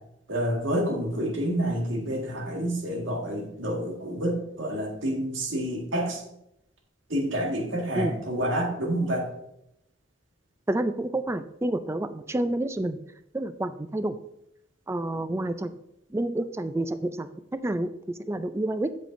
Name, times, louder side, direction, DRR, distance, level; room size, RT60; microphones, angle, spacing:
voice 1, 0.3-6.2 7.1-9.3, right 1 dB, 80° right, 1 dB, 1.7 m, -28 dB
voice 2, 10.7-13.0 13.3-14.2 14.9-15.8 16.1-18.9, right 1 dB, 15° right, 11 dB, 0.4 m, -29 dB
8.2 x 7.5 x 2.6 m, 0.81 s
head